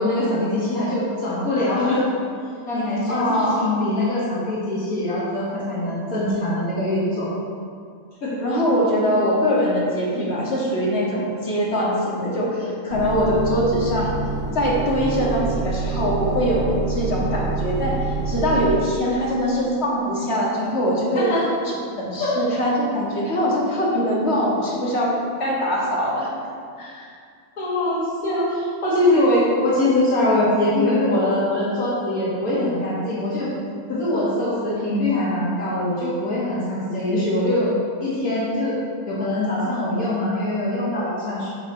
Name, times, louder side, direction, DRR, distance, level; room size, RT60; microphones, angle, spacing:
voice 1, 0.0-2.1 2.7-3.3 3.6-7.3 8.2-8.4 21.1-21.4 22.2-22.4 27.6-33.5 33.9-37.7 38.0-38.8 39.1-41.5, left 1 dB, 80° left, -8 dB, 2.4 m, -22 dB
voice 2, 3.1-3.7 8.4-14.2 14.5-21.4 22.0-26.3 26.8-27.1, equal, 50° left, -5 dB, 2.0 m, -22 dB
Motor vehicle (road) / Engine starting / Idling, 12.9-18.7, right 4 dB, 5° left, 1.8 m, -27 dB
9.3 x 6.1 x 4.3 m, 2.2 s
omnidirectional pair, 1.5 m